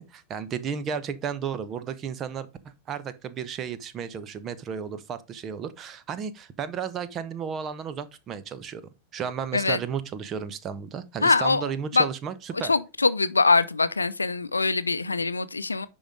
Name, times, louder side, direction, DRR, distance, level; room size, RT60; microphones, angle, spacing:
voice 1, 0.0-8.8 9.1-12.7, right 7 dB, 30° right, 0.9 m, -33 dB
voice 2, 11.2-12.1 12.6-15.9, left 3 dB, 80° left, 0.6 m, -23 dB
10.0 x 4.0 x 4.7 m
figure-of-eight pair, 90°, 0 cm